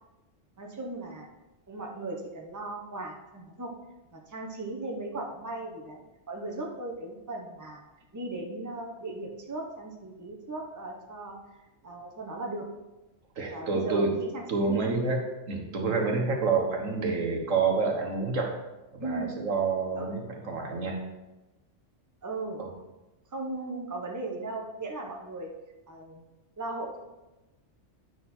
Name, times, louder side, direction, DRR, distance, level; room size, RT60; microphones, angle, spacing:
voice 1, 0.6-1.3 1.7-3.7 4.1-7.8 8.1-11.4 11.8-12.7 13.5-14.9 19.0-19.4 20.0-20.3 22.2-22.6 23.3-25.5 25.9-26.2 26.6-27.0, right 2 dB, 15° right, 1 dB, 1.0 m, -37 dB
voice 2, 13.4-14.1 14.5-18.5 18.9-21.0 22.6-22.7, right 4 dB, 80° right, 1 dB, 1.7 m, -28 dB
9.5 x 6.0 x 4.4 m, 1.1 s
omnidirectional pair, 1.3 m